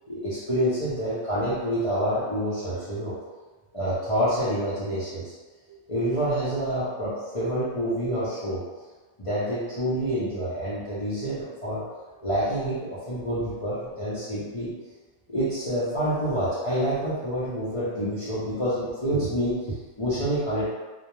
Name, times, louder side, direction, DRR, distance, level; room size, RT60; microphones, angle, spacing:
voice 1, 0.1-3.1 3.7-5.3 5.9-8.6 9.2-11.8 12.2-14.8 15.3-20.7, equal, 40° left, -12 dB, 0.6 m, -27 dB
2.3 x 2.1 x 2.9 m, 1.3 s
omnidirectional pair, 1.1 m